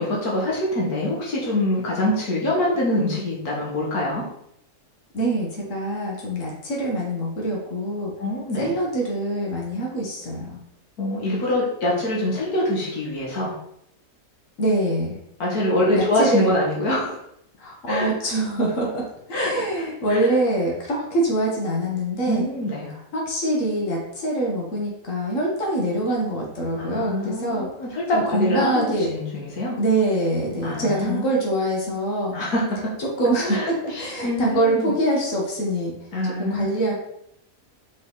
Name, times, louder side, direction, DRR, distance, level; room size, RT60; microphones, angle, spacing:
voice 1, 0.0-4.2 8.2-8.7 11.0-13.5 15.4-17.2 17.9-18.1 19.3-19.8 20.1-20.3 22.3-22.9 26.8-29.8 30.6-31.3 32.3-32.9 33.4-33.7 33.9-34.9 36.1-36.7, left 1 dB, 90° left, -3 dB, 2.0 m, -24 dB
voice 2, 5.1-8.1 8.6-10.6 14.6-15.2 15.9-16.5 17.6-19.1 19.4-22.5 23.1-27.7 28.1-29.1 29.8-32.3 33.0-35.9 36.4-36.9, right 1 dB, 60° left, -2 dB, 2.0 m, -24 dB
5.4 x 5.3 x 4.0 m, 0.76 s
omnidirectional pair, 1.6 m